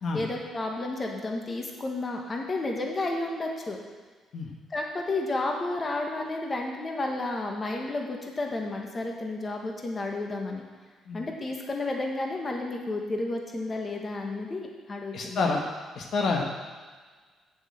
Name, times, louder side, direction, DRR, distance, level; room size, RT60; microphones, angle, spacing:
voice 1, 0.1-3.8 4.7-10.6 11.1-15.4, left 2 dB, 30° left, 1 dB, 1.5 m, -31 dB
voice 2, 15.1-15.6 15.9-16.4, left 4 dB, 60° left, 1 dB, 1.4 m, -28 dB
7.4 x 6.6 x 7.6 m, 1.5 s
cardioid pair, 95°, 0 cm